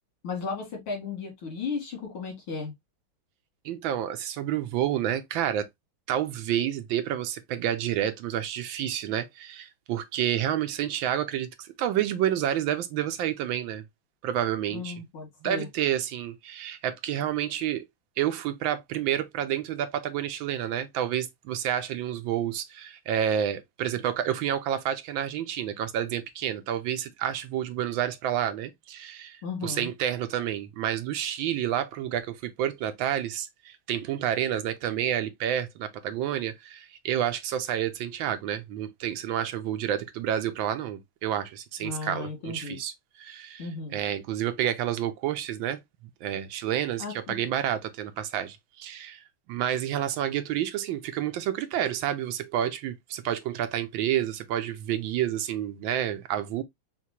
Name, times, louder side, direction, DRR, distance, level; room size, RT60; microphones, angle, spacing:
voice 1, 0.2-2.7 14.7-15.7 29.4-29.9 41.8-42.8 43.6-44.0 47.0-47.4, left 4 dB, 85° left, 2.8 m, -35 dB
voice 2, 3.6-5.7 6.1-13.8 14.2-14.9 15.4-17.9 18.2-42.9 43.2-43.7 43.9-45.8 46.2-49.2 49.5-56.6, right 10 dB, 75° right, 1.4 m, -29 dB
5.8 x 2.6 x 2.8 m
omnidirectional pair, 2.2 m